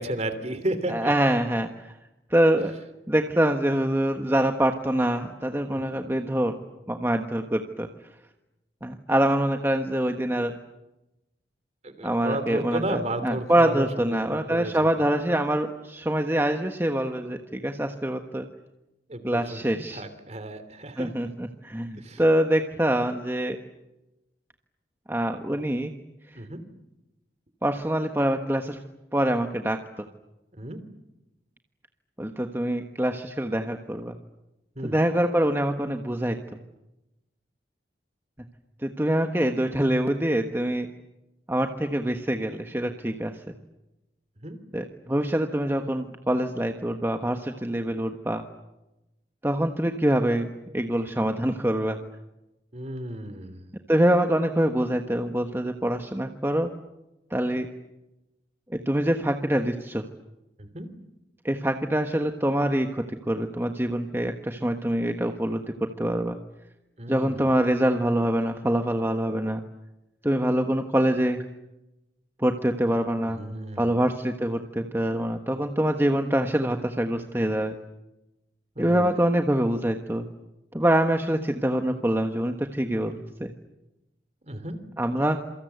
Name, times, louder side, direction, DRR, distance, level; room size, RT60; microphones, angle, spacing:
voice 1, 0.0-1.1 11.8-14.7 19.1-19.6 19.9-21.1 22.0-22.2 26.3-26.6 30.5-30.8 34.8-35.0 44.4-44.6 52.7-53.6 60.6-60.9 67.0-67.5 73.2-74.0 78.8-79.2 84.4-84.8, right 1 dB, 40° right, 11 dB, 3.1 m, -33 dB
voice 2, 0.9-1.9 2.3-2.7 3.1-6.5 6.9-7.9 8.8-10.5 12.0-18.4 19.2-20.0 21.0-23.6 25.1-25.9 26.3-26.4 27.6-28.8 29.1-30.1 32.2-34.1 34.8-36.4 38.8-40.9 41.5-43.3 44.7-48.4 49.4-50.5 50.7-52.0 53.9-56.7 57.3-57.7 58.7-60.1 61.4-66.4 67.1-69.6 70.2-71.4 72.4-73.4 73.8-77.8 78.8-80.3 80.7-83.5 85.0-85.4, right 1 dB, 15° right, 5 dB, 1.3 m, -25 dB
27.5 x 24.5 x 8.1 m, 0.95 s
head